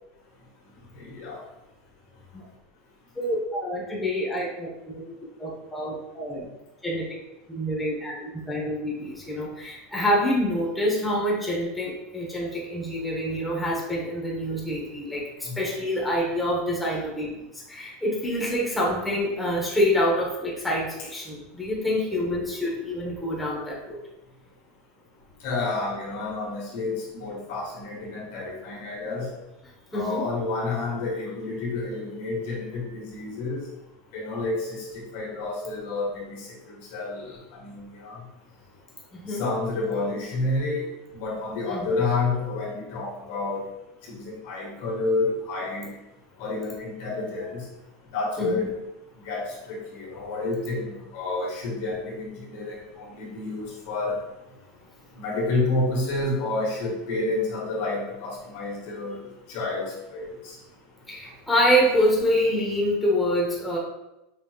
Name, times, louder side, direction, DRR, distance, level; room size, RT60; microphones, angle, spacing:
voice 1, 3.1-5.0 5.4-6.4 6.8-7.0 7.5-24.0 29.9-30.3 39.1-39.5 41.7-42.0 48.4-48.7 61.1-63.8, equal, 5° left, -5 dB, 1.1 m, -26 dB
voice 2, 25.4-29.3 29.9-33.6 34.1-34.8 35.1-36.3 36.7-37.3 37.6-38.1 39.4-40.9 41.1-43.6 44.1-45.9 46.4-47.6 48.1-48.7 49.3-54.2 55.1-59.2 59.5-60.5, left 3 dB, 70° left, -3 dB, 1.5 m, -29 dB
5.4 x 3.1 x 2.4 m, 0.94 s
supercardioid pair, 135°, 0 cm